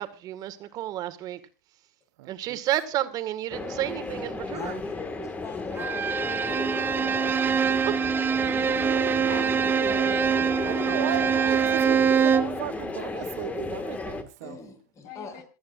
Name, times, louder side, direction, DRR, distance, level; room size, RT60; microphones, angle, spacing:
voice 1, 0.0-1.4 2.3-4.8 9.2-9.8, right 13 dB, 40° right, 1.8 m, -31 dB
voice 2, 2.2-2.6 10.6-14.6, right 16 dB, 65° right, 0.6 m, -35 dB
sound 1, 3.5-14.2, left 3 dB, 15° left, 1.8 m, -34 dB
voice 3, 4.5-7.2 8.0-8.1 9.2-9.5 10.1-10.3 14.4-15.4, left 5 dB, 35° left, 4.8 m, -42 dB
Bowed string instrument, 5.8-12.6, right 7 dB, 20° right, 0.7 m, -24 dB
voice 4, 6.9-8.8 15.0-15.4, left 7 dB, 55° left, 4.2 m, -46 dB
27.0 x 9.4 x 2.5 m
hypercardioid pair, 100°, 10 cm